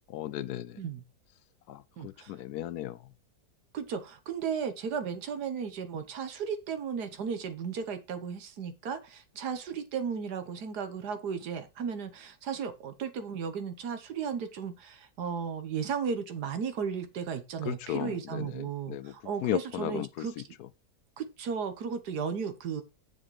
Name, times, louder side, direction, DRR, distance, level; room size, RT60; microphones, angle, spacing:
voice 1, 0.1-0.8 1.7-3.0 17.7-19.1 19.4-20.3, left 13 dB, 75° left, 1.1 m, -35 dB
voice 2, 2.0-2.3 3.7-20.3 21.2-22.8, right 6 dB, 80° right, 1.6 m, -35 dB
7.4 x 6.5 x 4.8 m
omnidirectional pair, 1.7 m